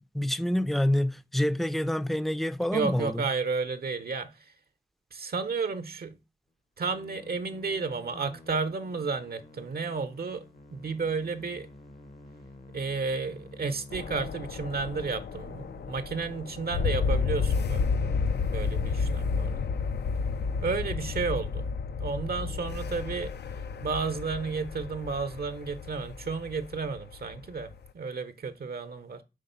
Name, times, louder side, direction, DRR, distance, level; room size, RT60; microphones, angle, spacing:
voice 1, 0.1-3.2, left 1 dB, ahead, 0.3 m, -27 dB
voice 2, 2.7-4.5 5.1-6.2 6.8-10.5 10.7-11.7 12.7-19.7 20.6-21.7 22.0-23.3 23.8-29.2, right 4 dB, 70° right, 0.6 m, -32 dB
Musical instrument, 6.9-21.7, left 2 dB, 55° left, 0.8 m, -49 dB
sound 1, 13.9-27.9, left 5 dB, 90° left, 0.4 m, -31 dB
5.1 x 3.6 x 5.4 m
wide cardioid pair, 95°, 17 cm